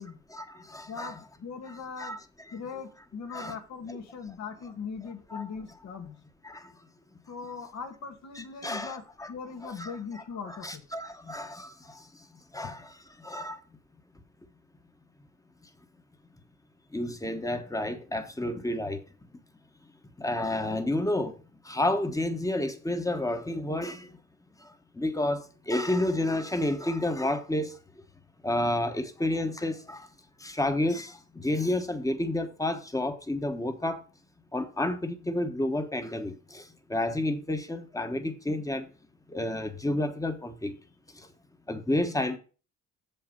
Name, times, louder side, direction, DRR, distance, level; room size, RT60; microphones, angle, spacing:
voice 1, 0.3-1.2 1.7-2.2 3.3-3.6 5.3-5.4 6.4-6.7 8.6-9.3 9.6-12.3 12.5-12.9 13.2-13.6 16.9-19.0 20.2-24.2 24.6-28.0 28.4-30.1 30.4-34.0 34.5-38.9 39.3-40.8 41.1-41.3 41.7-42.4, left 1 dB, 10° left, 1.3 m, -31 dB
voice 2, 0.9-2.2 2.5-6.2 7.3-10.8, left 5 dB, 60° left, 1.7 m, -40 dB
7.3 x 5.7 x 5.3 m
cardioid pair, 90°, 30 cm